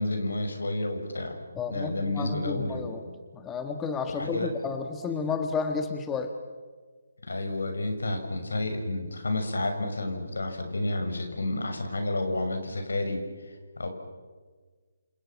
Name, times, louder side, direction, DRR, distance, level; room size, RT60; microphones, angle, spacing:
voice 1, 0.0-1.3 1.7-2.9 4.1-4.5 7.2-13.2 13.8-13.9, left 2 dB, 80° left, 5 dB, 6.4 m, -30 dB
voice 2, 1.5-3.0 3.3-6.3, left 5 dB, 10° left, 6 dB, 1.7 m, -31 dB
30.0 x 27.5 x 6.0 m, 1.4 s
figure-of-eight pair, 150°, 0 cm